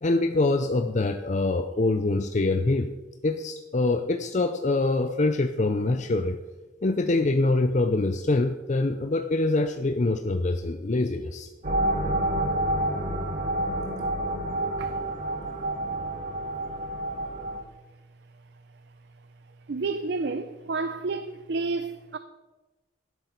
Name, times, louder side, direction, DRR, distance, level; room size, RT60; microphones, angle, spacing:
voice 1, 0.0-2.9 3.2-6.4 6.8-11.5, left 2 dB, 40° left, 0.5 m, -24 dB
sound 1, 11.6-17.6, right 1 dB, 45° right, 1.5 m, -28 dB
voice 2, 19.7-22.2, right 3 dB, 60° right, 0.5 m, -30 dB
12.0 x 11.0 x 4.5 m
head